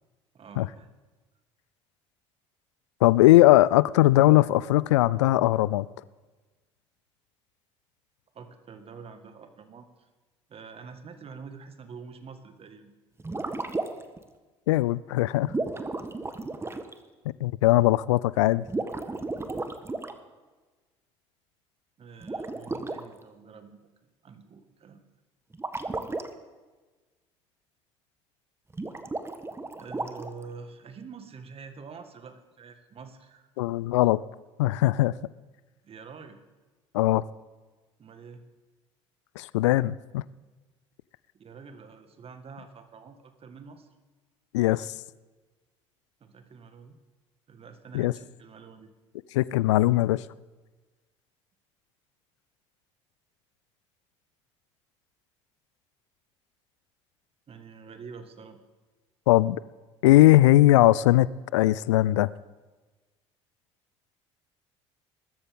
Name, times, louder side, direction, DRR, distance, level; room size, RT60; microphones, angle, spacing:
voice 1, 0.3-0.9 8.3-10.1 10.5-12.9 22.0-23.9 24.2-25.0 29.8-33.5 35.8-36.4 38.0-38.4 41.3-43.9 46.2-47.0 47.5-48.9 57.5-58.6, right 5 dB, 40° right, 8 dB, 1.8 m, -46 dB
voice 2, 3.0-5.9 14.7-15.5 17.3-18.6 33.6-34.2 34.6-35.1 36.9-37.2 39.4-40.2 44.5-44.9 47.9-48.1 49.3-50.2 59.3-59.6 60.0-61.3 61.5-62.3, left 16 dB, 75° left, 21 dB, 0.4 m, -20 dB
sound 1, 13.2-14.2 15.5-16.9 18.6-20.2 22.2-23.0 25.5-26.3 28.7-30.5, right 3 dB, 15° right, 1.4 m, -33 dB
21.0 x 13.0 x 3.8 m, 1.3 s
hypercardioid pair, 60°, 15 cm